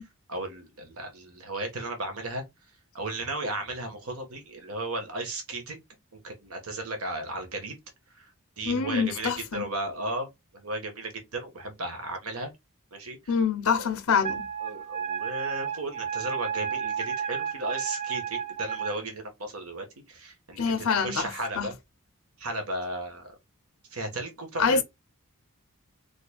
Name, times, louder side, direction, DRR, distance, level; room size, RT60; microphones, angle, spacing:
voice 1, 0.3-2.4 2.9-5.8 6.1-7.7 8.2-8.3 8.6-10.3 10.5-12.5 12.9-13.3 13.7-13.9 14.6-21.8 22.4-23.2 23.9-24.8, right 2 dB, 75° right, 1.3 m, -35 dB
voice 2, 8.6-9.7 13.3-14.5 20.6-21.3 21.6-21.7 24.6-24.8, left 5 dB, 75° left, 0.6 m, -25 dB
Wind instrument woodwind instrument, 14.2-19.0, right 8 dB, 30° right, 0.6 m, -32 dB
4.0 x 3.2 x 2.2 m
head